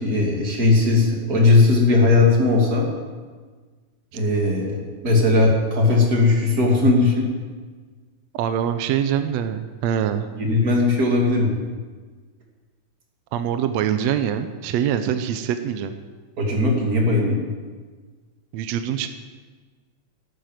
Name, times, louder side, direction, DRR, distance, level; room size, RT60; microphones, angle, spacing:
voice 1, 0.0-2.9 4.1-7.3 10.4-11.5 16.4-17.4, left 3 dB, 30° right, -1 dB, 2.7 m, -18 dB
voice 2, 8.3-10.3 13.3-15.9 18.5-19.1, right 9 dB, 75° right, 8 dB, 1.8 m, -24 dB
11.5 x 9.4 x 9.1 m, 1.4 s
omnidirectional pair, 3.4 m